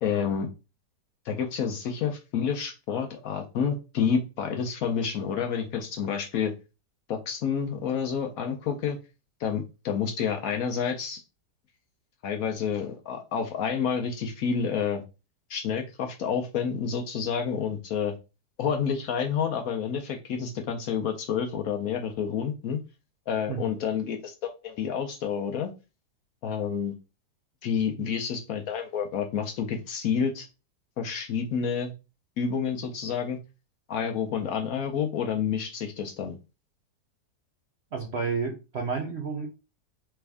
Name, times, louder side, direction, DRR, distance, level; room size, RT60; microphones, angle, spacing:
voice 1, 0.0-0.5 1.3-6.5 7.1-9.0 9.4-11.2 12.2-15.0 15.5-18.2 18.6-22.8 23.3-25.7 26.4-26.9 27.6-30.5 31.0-31.9 32.4-33.4 33.9-36.3, left 7 dB, 70° left, 5 dB, 0.9 m, -29 dB
voice 2, 37.9-39.5, right 5 dB, 65° right, 2 dB, 0.6 m, -31 dB
3.4 x 3.3 x 3.3 m, 0.29 s
omnidirectional pair, 1.8 m